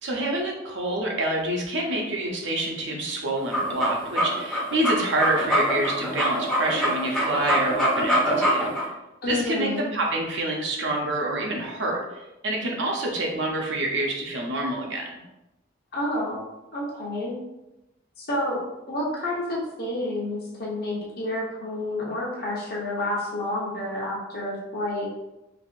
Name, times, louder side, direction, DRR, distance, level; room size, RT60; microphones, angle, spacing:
voice 1, 0.0-8.7 9.3-15.2, right 1 dB, 65° right, -1 dB, 0.6 m, -27 dB
sound 1, 3.4-8.8, equal, 5° left, 0.6 m, -24 dB
voice 2, 9.2-9.9 15.9-16.4 16.7-17.3 18.2-18.6 18.9-25.1, left 1 dB, 50° left, -4 dB, 0.8 m, -29 dB
3.4 x 2.5 x 2.5 m, 0.95 s
head